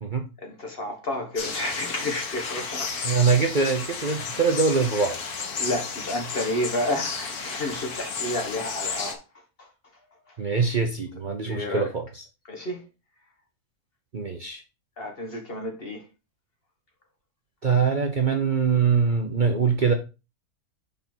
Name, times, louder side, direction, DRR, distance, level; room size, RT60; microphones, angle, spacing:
voice 1, 0.4-2.9 5.6-9.2 9.6-9.7 10.3-10.4 11.5-11.9 12.5-12.8 15.0-16.0, left 1 dB, 40° left, 1.5 m, -30 dB
sound 1, 1.4-9.1, left 5 dB, 80° left, 1.7 m, -33 dB
voice 2, 3.0-5.2 10.4-12.0 14.1-14.6 17.6-19.9, right 5 dB, 40° right, 0.9 m, -23 dB
5.5 x 5.3 x 4.4 m
omnidirectional pair, 1.6 m